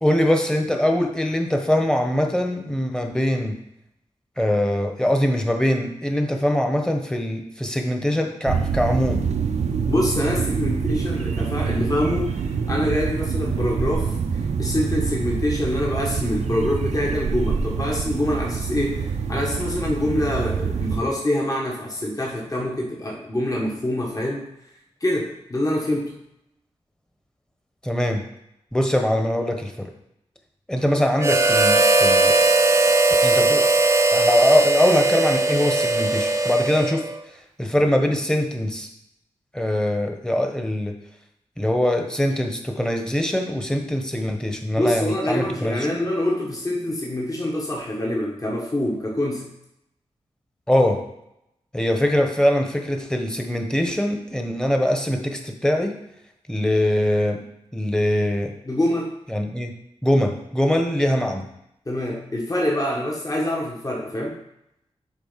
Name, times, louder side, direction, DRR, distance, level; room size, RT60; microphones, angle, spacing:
voice 1, 0.0-3.6 4.4-9.3 27.8-28.2 28.7-29.9 30.7-32.3 33.2-33.8 34.1-37.1 37.6-38.9 39.5-40.9 41.6-45.9 50.7-51.0 51.7-55.9 56.5-57.4 57.7-58.5 59.3-59.7 60.0-61.5, left 1 dB, 5° left, 3 dB, 1.3 m, -22 dB
sound 1, 8.5-21.0, right 5 dB, 85° right, 0.7 m, -26 dB
voice 2, 9.9-24.4 25.0-26.1 44.7-49.5 58.6-59.1 61.8-64.4, left 1 dB, 30° left, -2 dB, 1.7 m, -25 dB
Harmonica, 31.2-37.2, right 2 dB, 25° right, 0.6 m, -19 dB
7.2 x 4.1 x 5.8 m, 0.81 s
cardioid pair, 60°, 12 cm